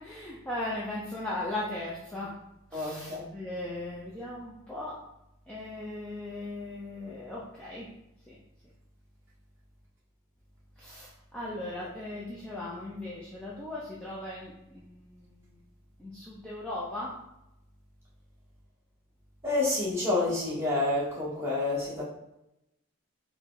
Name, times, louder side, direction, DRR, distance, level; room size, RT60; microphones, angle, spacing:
voice 1, 0.0-2.3 2.7-5.0 5.5-7.9 8.3-8.4 10.8-15.6 16.0-17.1, left 1 dB, 5° left, -7 dB, 0.5 m, -38 dB
voice 2, 2.7-3.3 19.4-22.0, left 2 dB, 10° right, -8 dB, 1.1 m, -28 dB
4.5 x 2.2 x 3.8 m, 0.87 s
head